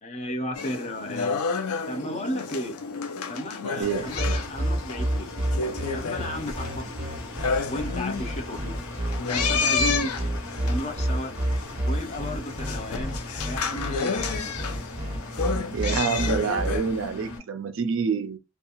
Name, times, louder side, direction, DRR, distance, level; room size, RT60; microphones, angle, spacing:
voice 1, 0.0-1.4 1.9-2.7 3.3-5.3 5.9-6.8 7.7-8.7 9.3-10.1 10.6-11.3 11.8-14.4, left 1 dB, 30° left, 0.5 m, -34 dB
sound 1, 0.5-17.1, left 5 dB, 85° left, 0.5 m, -31 dB
Engine, 3.8-17.4, left 1 dB, 70° left, 0.9 m, -40 dB
voice 2, 3.8-4.1 15.7-18.4, right 6 dB, 60° right, 0.3 m, -27 dB
sound 2, 4.2-16.8, right 1 dB, 25° right, 0.7 m, -29 dB
2.7 x 2.3 x 2.8 m
head